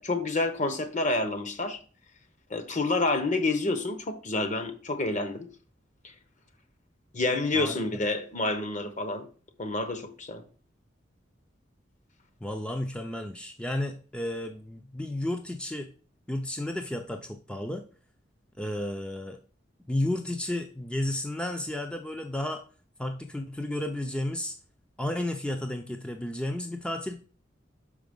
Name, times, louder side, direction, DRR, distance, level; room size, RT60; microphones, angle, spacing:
voice 1, 0.0-1.8 2.5-5.5 7.1-9.3 9.6-10.4, left 2 dB, 40° left, 1.0 m, -28 dB
voice 2, 12.4-15.9 16.3-17.9 18.6-19.4 19.9-22.6 23.0-24.5 25.0-27.2, left 1 dB, 5° left, 0.5 m, -32 dB
5.8 x 5.0 x 5.2 m
head